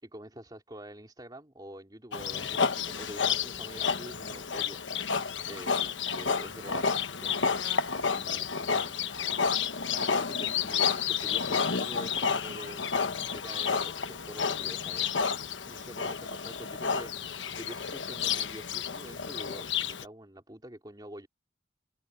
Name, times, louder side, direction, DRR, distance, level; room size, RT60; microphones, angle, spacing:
voice 1, 0.0-4.8 5.5-6.9 7.2-7.5 7.7-9.4 9.9-12.8 13.3-15.2 15.7-17.1 17.4-21.3, right 1 dB, 20° right, 3.8 m, -46 dB
Livestock farm animals working animals, 2.1-20.0, left 6 dB, 85° left, 1.2 m, -30 dB
open air
head